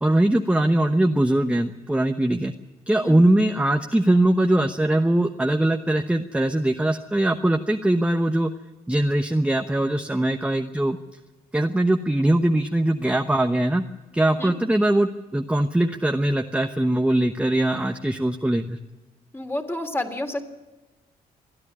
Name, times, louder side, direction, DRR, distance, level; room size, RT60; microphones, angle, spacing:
voice 1, 0.0-2.5 2.9-8.5 8.9-11.0 11.5-13.8 14.1-18.8, right 1 dB, 5° right, 5 dB, 1.0 m, -21 dB
voice 2, 19.3-20.4, left 1 dB, 15° left, 5 dB, 3.1 m, -29 dB
26.5 x 10.0 x 9.8 m, 1.2 s
supercardioid pair, 60°, 17 cm